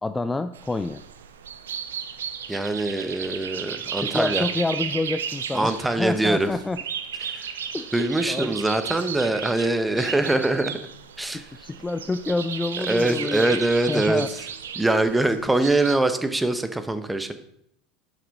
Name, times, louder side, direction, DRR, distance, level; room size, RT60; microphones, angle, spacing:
voice 1, 0.0-1.0 4.0-5.7 6.0-6.8 7.7-7.9 8.3-8.5 11.3-13.6 13.9-14.3, left 2 dB, 15° left, 10 dB, 0.4 m, -27 dB
sound 1, 0.5-16.0, right 7 dB, 90° right, 0.6 m, -34 dB
voice 2, 2.5-4.5 5.5-6.5 7.2-7.5 7.9-10.8 11.2-11.4 12.9-14.2 14.8-17.3, right 2 dB, 10° right, 9 dB, 0.9 m, -23 dB
7.1 x 5.9 x 5.4 m, 0.74 s
hypercardioid pair, 90°, 0 cm